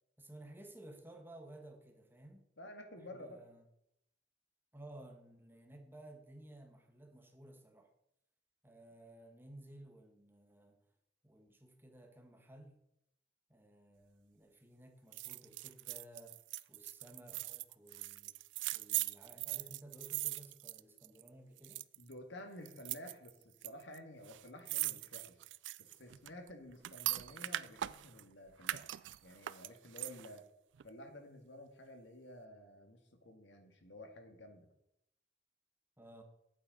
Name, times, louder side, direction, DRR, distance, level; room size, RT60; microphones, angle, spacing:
voice 1, 0.2-2.4 3.1-3.6 4.7-7.9 8.6-10.8 11.2-12.8 13.5-16.4 16.7-18.3 18.7-21.9 36.0-36.2, right 1 dB, 10° right, 3 dB, 1.4 m, -56 dB
voice 2, 2.6-3.4 22.0-25.4 25.8-29.0 29.2-30.4 30.8-34.7, left 1 dB, 85° left, 5 dB, 1.8 m, -52 dB
sound 1, 15.1-21.3 21.6-22.1 22.7-23.7 23.9-24.0 24.2-28.2 28.6-30.4 30.8-30.9, right 16 dB, 85° right, 0.4 m, -41 dB
8.7 x 7.9 x 5.3 m, 0.78 s
head